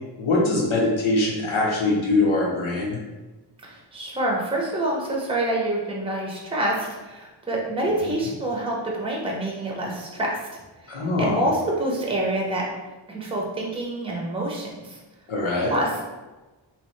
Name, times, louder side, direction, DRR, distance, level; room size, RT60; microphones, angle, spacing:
voice 1, 0.2-3.0 10.9-11.5 15.3-15.7, left 2 dB, 80° left, -2 dB, 1.0 m, -22 dB
voice 2, 3.6-10.4 10.8-12.7 13.1-15.0 15.7-16.0, right 1 dB, 10° right, -2 dB, 0.7 m, -27 dB
3.2 x 3.0 x 3.1 m, 1.2 s
wide cardioid pair, 115°, 47 cm